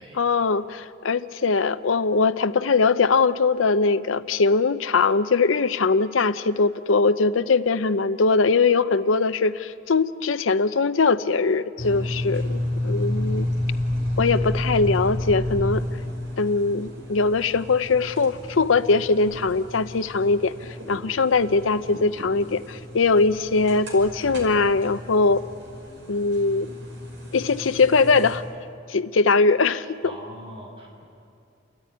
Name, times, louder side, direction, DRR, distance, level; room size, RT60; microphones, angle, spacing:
voice 1, 0.2-13.5 14.2-15.9 16.4-20.5 20.9-25.4 26.1-26.7 27.3-28.4 28.9-30.0, left 4 dB, 85° left, 13 dB, 0.7 m, -21 dB
sound 1, 11.8-28.4, left 1 dB, 65° right, 5.6 m, -31 dB
voice 2, 30.0-31.0, right 1 dB, 25° right, -2 dB, 6.9 m, -41 dB
29.5 x 14.0 x 9.4 m, 2.4 s
head